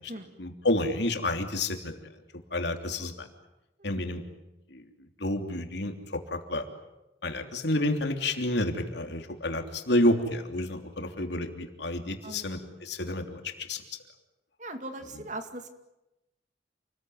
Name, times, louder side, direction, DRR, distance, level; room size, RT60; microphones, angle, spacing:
voice 1, 0.4-2.1 2.5-3.3 3.8-4.2 4.7-6.7 7.2-13.8, left 1 dB, 70° left, 5 dB, 3.2 m, -30 dB
voice 2, 12.2-12.8 14.6-15.7, right 1 dB, 40° right, 7 dB, 2.3 m, -40 dB
29.0 x 20.5 x 9.4 m, 0.96 s
head